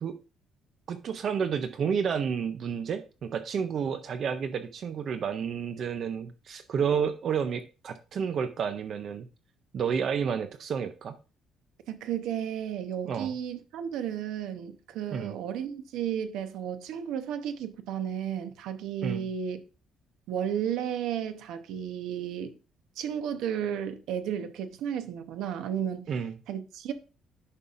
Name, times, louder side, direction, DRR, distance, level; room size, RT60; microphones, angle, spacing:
voice 1, 0.9-9.3 9.7-11.1 13.0-13.3 15.1-15.4 19.0-19.3 26.1-26.3, right 7 dB, 40° right, 0.5 m, -30 dB
voice 2, 11.9-19.6 20.3-22.5 23.0-26.1 26.5-26.9, right 9 dB, 75° right, 0.9 m, -33 dB
11.0 x 5.4 x 2.5 m
cardioid pair, 165°, 0 cm